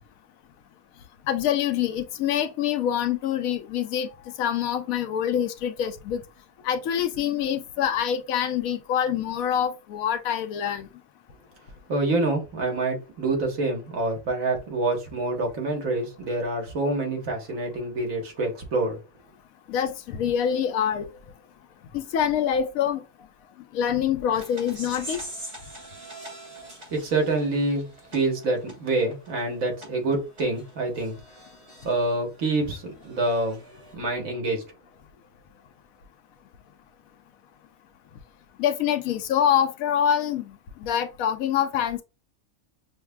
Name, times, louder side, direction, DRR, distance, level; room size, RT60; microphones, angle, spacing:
voice 1, 1.3-4.1 4.4-6.2 6.6-10.9 19.7-21.1 21.9-23.0 23.7-25.2 38.6-42.0, left 9 dB, 85° left, 1.0 m, -25 dB
voice 2, 11.9-19.0 26.9-27.9 28.1-31.2 31.8-33.7 33.9-34.6, right 2 dB, 75° right, 1.6 m, -26 dB
sound 1, 24.3-31.9 32.3-33.9, right 1 dB, 45° right, 2.2 m, -43 dB
6.3 x 2.1 x 2.2 m
omnidirectional pair, 1.4 m